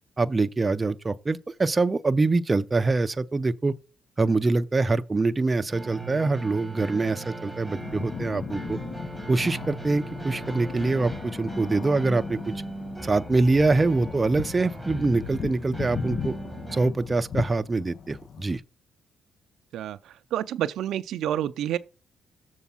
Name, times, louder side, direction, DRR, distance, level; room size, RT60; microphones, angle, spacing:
voice 1, 0.2-3.7 4.2-8.8 9.3-12.5 13.0-16.3 16.7-18.6, right 3 dB, 25° right, 0.5 m, -24 dB
sound 1, 5.7-16.9, right 3 dB, 5° right, 1.2 m, -39 dB
sound 2, 7.6-18.6, left 6 dB, 55° left, 0.5 m, -37 dB
voice 2, 19.7-21.8, right 11 dB, 75° right, 0.5 m, -29 dB
7.1 x 4.5 x 5.5 m
cardioid pair, 90°, 0 cm